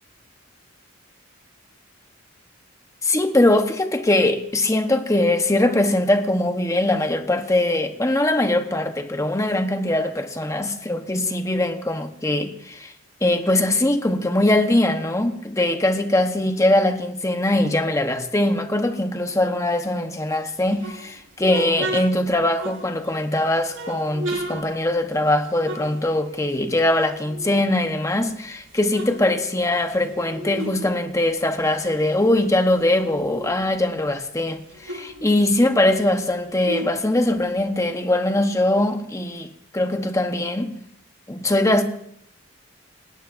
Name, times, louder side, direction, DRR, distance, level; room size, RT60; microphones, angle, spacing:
voice 1, 3.0-12.9 13.2-40.8 41.3-41.8, left 1 dB, 15° left, 1.0 m, -21 dB
sound 1, 20.6-23.2 23.7-26.6 26.8-28.2 28.6-30.9 31.1-33.7 34.1-34.2 34.4-37.8, right 1 dB, 75° right, 5.5 m, -35 dB
28.0 x 18.0 x 2.6 m
head